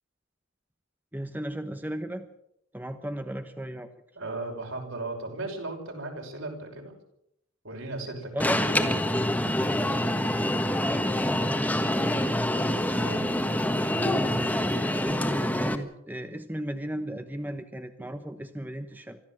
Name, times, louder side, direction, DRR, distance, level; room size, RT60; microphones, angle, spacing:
voice 1, 1.1-2.3 2.7-3.9 8.3-8.9 10.7-12.2 14.0-19.2, right 1 dB, 10° right, 7 dB, 1.0 m, -36 dB
voice 2, 4.2-6.9 7.6-8.9 12.9-13.4, right 2 dB, 65° right, 2 dB, 6.0 m, -36 dB
Alarm, 8.4-15.7, left 1 dB, 5° left, 1.5 m, -26 dB
25.0 x 14.5 x 7.6 m, 0.78 s
head